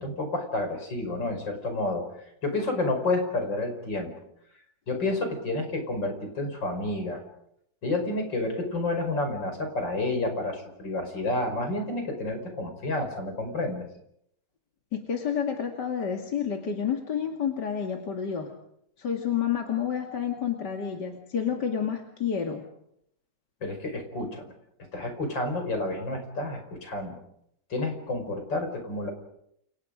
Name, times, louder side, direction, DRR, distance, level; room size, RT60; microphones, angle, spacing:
voice 1, 0.0-2.0 2.4-4.1 4.9-7.2 7.8-13.8 23.6-24.5 24.9-27.2 27.7-29.1, left 2 dB, 85° left, 5 dB, 6.1 m, -30 dB
voice 2, 14.9-18.5 19.0-22.6, left 8 dB, 70° left, 2 dB, 2.9 m, -29 dB
30.0 x 29.0 x 5.2 m, 0.76 s
omnidirectional pair, 1.9 m